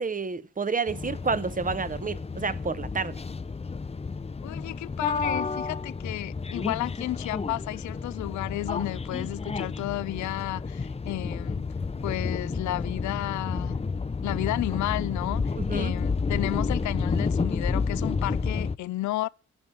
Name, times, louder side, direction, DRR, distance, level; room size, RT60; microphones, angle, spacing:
voice 1, 0.0-3.1 15.6-15.9, right 4 dB, 30° right, 1.0 m, -29 dB
sound 1, 0.9-18.8, left 4 dB, 20° left, 0.6 m, -31 dB
voice 2, 4.4-11.7 12.0-13.8 14.2-19.3, left 16 dB, 75° left, 0.5 m, -32 dB
13.5 x 5.4 x 8.6 m
supercardioid pair, 45°, 29 cm